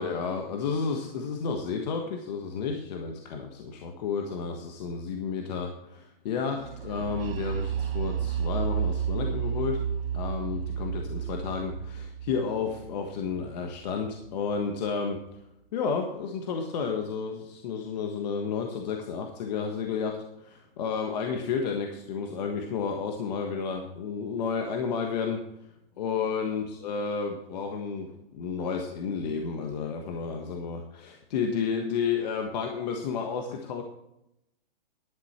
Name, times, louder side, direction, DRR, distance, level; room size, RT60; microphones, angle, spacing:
voice 1, 0.0-9.8 10.1-15.2 15.7-25.4 26.0-33.8, left 5 dB, 45° left, 3 dB, 1.4 m, -31 dB
sound 1, 6.6-14.3, right 8 dB, 75° right, 1.3 m, -32 dB
11.5 x 9.7 x 4.3 m, 0.85 s
hypercardioid pair, 155°, 29 cm